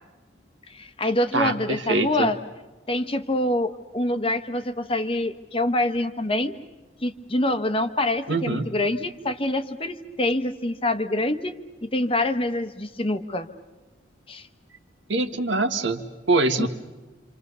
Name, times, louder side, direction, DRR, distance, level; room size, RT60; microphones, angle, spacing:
voice 1, 0.7-2.4 2.9-6.6 7.0-11.6 11.8-13.5 14.3-14.5 16.6-16.7, left 1 dB, 30° left, 9 dB, 1.1 m, -25 dB
voice 2, 1.3-2.3 8.3-8.7 15.1-16.7, right 2 dB, 75° right, 7 dB, 1.7 m, -24 dB
27.5 x 26.5 x 6.9 m, 1.2 s
head